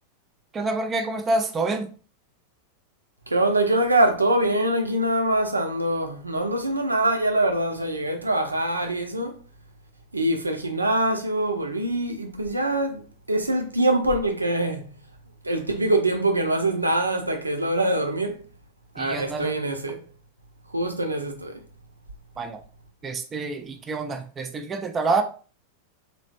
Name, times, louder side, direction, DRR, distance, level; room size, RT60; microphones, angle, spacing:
voice 1, 0.5-1.9 19.0-19.6 22.4-22.6 23.0-25.2, right 3 dB, 20° right, 0.4 m, -27 dB
voice 2, 3.3-9.3 10.1-14.8 15.4-18.4 19.0-20.0 20.7-21.6, right 1 dB, 80° right, 0.5 m, -24 dB
3.3 x 2.5 x 2.5 m
figure-of-eight pair, 90°, 0 cm